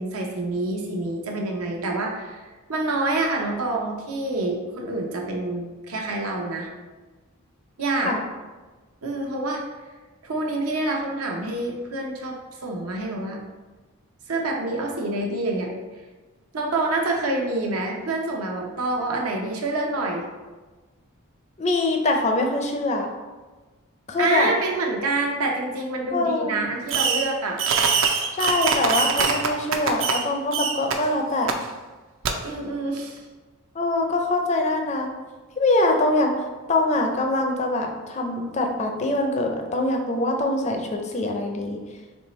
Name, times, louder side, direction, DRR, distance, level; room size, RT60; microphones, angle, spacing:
voice 1, 0.0-2.4 2.7-6.7 7.8-8.1 9.0-9.6 10.2-12.4 12.6-13.4 14.3-15.7 16.5-20.3 24.2-27.6 32.4-33.2, right 2 dB, 80° right, 0 dB, 0.7 m, -27 dB
voice 2, 21.6-23.1 24.1-24.5 26.1-26.6 28.4-31.5 33.8-35.1 35.6-36.4 36.7-41.8, left 2 dB, 30° left, 3 dB, 0.4 m, -23 dB
Fireworks, 26.9-27.3 27.6-30.2 30.5-30.9 31.5-31.6 32.2-32.3, right 5 dB, 60° right, 0.4 m, -23 dB
4.4 x 3.2 x 3.0 m, 1.3 s
head